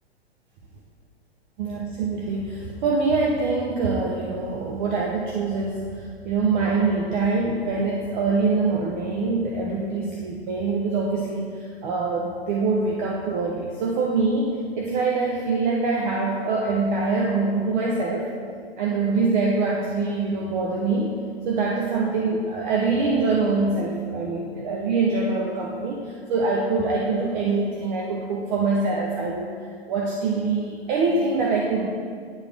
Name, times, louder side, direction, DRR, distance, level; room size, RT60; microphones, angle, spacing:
voice 1, 1.6-18.3 18.8-21.2 21.5-29.5 29.9-31.9, right 3 dB, 45° right, -2 dB, 0.9 m, -24 dB
9.7 x 4.8 x 3.5 m, 2.1 s
hypercardioid pair, 115°, 32 cm